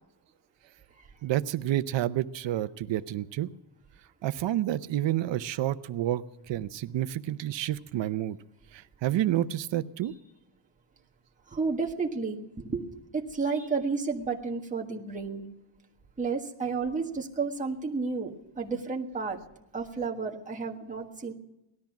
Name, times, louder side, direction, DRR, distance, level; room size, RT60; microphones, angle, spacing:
voice 1, 1.2-3.5 4.2-8.4 8.7-10.1, right 13 dB, 75° right, 12 dB, 0.8 m, -29 dB
voice 2, 11.5-15.5 16.2-18.3 18.6-19.4 19.7-21.3, right 4 dB, 15° right, -1 dB, 1.5 m, -31 dB
18.5 x 13.0 x 5.9 m, 0.89 s
wide cardioid pair, 165°, 45 cm